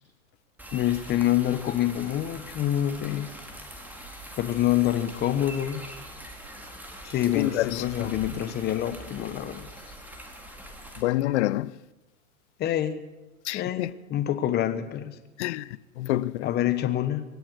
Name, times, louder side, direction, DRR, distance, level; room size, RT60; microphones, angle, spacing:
sound 1, 0.6-11.0, right 1 dB, 5° right, 2.2 m, -43 dB
voice 1, 0.7-3.3 4.4-5.8 7.0-9.7 12.6-13.0 13.5-15.1 16.4-17.2, left 12 dB, 25° left, 1.2 m, -26 dB
voice 2, 7.3-8.1 11.0-11.7 13.4-13.9 15.4-16.5, left 16 dB, 55° left, 0.6 m, -28 dB
24.5 x 8.6 x 6.4 m
hypercardioid pair, 130°, 42 cm